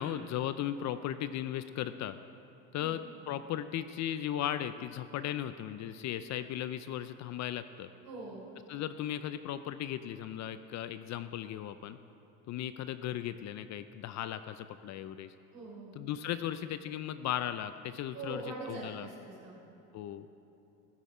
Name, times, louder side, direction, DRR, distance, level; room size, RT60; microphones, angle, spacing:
voice 1, 0.0-2.2 2.7-7.9 8.7-12.0 12.5-15.3 16.0-19.1 19.9-20.3, left 11 dB, 45° left, 12 dB, 0.5 m, -37 dB
voice 2, 8.0-8.5 15.5-15.9 18.1-19.6, right 2 dB, 55° right, -4 dB, 3.7 m, -43 dB
15.0 x 12.0 x 4.9 m, 2.9 s
supercardioid pair, 110°, 40 cm